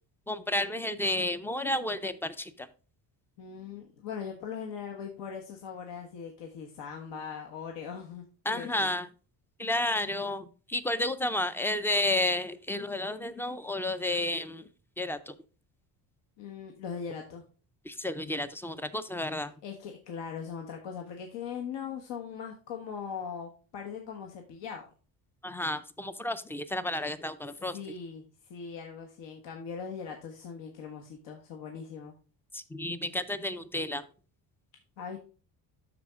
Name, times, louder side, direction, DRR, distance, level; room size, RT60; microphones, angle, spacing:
voice 1, 0.3-2.7 8.5-9.1 9.6-14.7 15.0-15.4 17.8-19.5 25.4-27.8 32.5-34.0, left 1 dB, 5° left, 13 dB, 0.3 m, -31 dB
voice 2, 3.4-8.9 16.4-17.4 19.6-24.8 27.7-32.1 35.0-35.2, left 6 dB, 80° left, 2 dB, 1.4 m, -40 dB
12.5 x 4.2 x 3.5 m, 0.37 s
cardioid pair, 135°, 42 cm